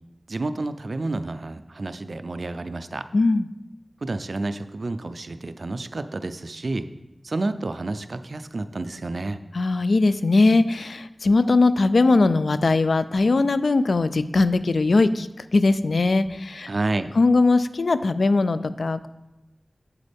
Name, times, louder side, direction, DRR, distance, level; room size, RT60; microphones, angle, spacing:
voice 1, 0.3-3.1 4.0-6.9 7.2-9.4 16.7-17.1, right 2 dB, 70° right, 11 dB, 0.4 m, -30 dB
voice 2, 3.1-3.5 9.5-16.7 17.2-19.1, left 3 dB, 85° left, 13 dB, 0.3 m, -20 dB
8.3 x 8.2 x 3.5 m, 0.96 s
wide cardioid pair, 50°, 0 cm